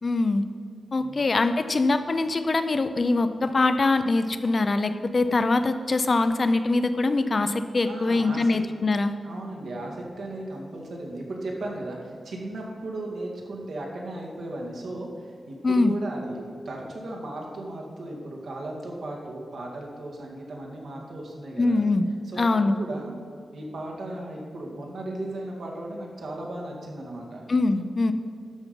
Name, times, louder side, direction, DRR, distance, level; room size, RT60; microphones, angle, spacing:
voice 1, 0.0-0.4 0.9-9.1 15.6-15.9 21.6-22.1 22.4-22.8 27.5-28.1, left 3 dB, 35° left, 10 dB, 0.5 m, -23 dB
voice 2, 7.8-8.5 9.2-21.9 22.3-23.1 23.5-27.4, right 1 dB, 70° right, -1 dB, 2.1 m, -36 dB
12.5 x 6.0 x 5.3 m, 2.4 s
wide cardioid pair, 160°, 0 cm